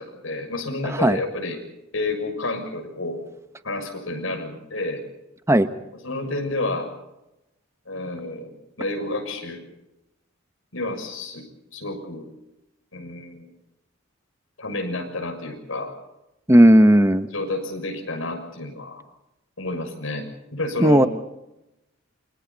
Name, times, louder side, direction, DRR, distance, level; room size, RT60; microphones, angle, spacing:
voice 1, 0.0-1.6 1.9-3.2 3.6-5.0 6.0-6.9 7.9-9.6 10.7-11.4 11.7-12.3 12.9-13.5 14.6-15.9 17.3-19.0 19.6-21.1, left 2 dB, 85° left, 5 dB, 6.7 m, -30 dB
voice 2, 0.8-1.2 5.5-5.7 16.5-17.3 20.8-21.1, right 1 dB, 15° right, 10 dB, 1.2 m, -14 dB
29.5 x 26.0 x 4.2 m, 0.91 s
head